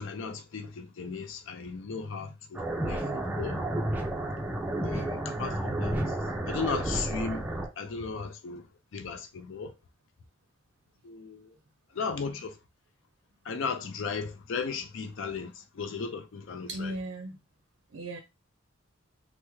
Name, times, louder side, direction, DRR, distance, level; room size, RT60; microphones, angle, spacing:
voice 1, 0.0-3.0 3.4-3.6 4.8-6.0 6.5-7.4 7.8-8.6 8.9-9.7 11.0-11.5 12.0-12.5 13.5-15.5 15.8-16.9, left 5 dB, 65° left, 0.4 m, -35 dB
voice 2, 1.9-2.3 16.7-17.4 17.9-18.2, right 1 dB, 65° right, 0.5 m, -37 dB
sound 1, 2.5-7.7, right 1 dB, 10° right, 0.4 m, -31 dB
3.4 x 2.0 x 3.0 m
head